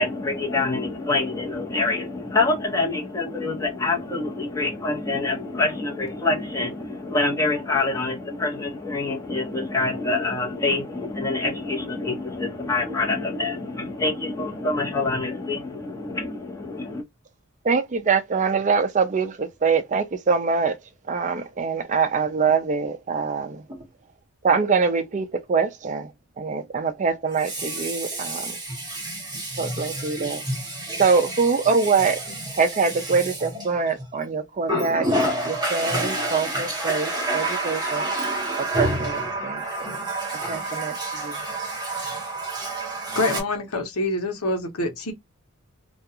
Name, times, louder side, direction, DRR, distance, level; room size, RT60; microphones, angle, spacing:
voice 1, 0.0-17.0, left 3 dB, 15° left, 0.9 m, -26 dB
voice 2, 17.6-20.8 21.1-23.6 24.4-26.1 26.4-28.6 29.6-30.4 31.0-32.2 32.6-39.6 40.5-41.0 41.2-41.4, right 5 dB, 35° right, 0.4 m, -24 dB
Water tap faucet, 23.7-23.8 27.3-34.1 34.6-43.4, right 1 dB, 20° right, 0.9 m, -29 dB
voice 3, 43.1-45.1, left 2 dB, 85° left, 0.9 m, -26 dB
2.4 x 2.3 x 2.7 m
head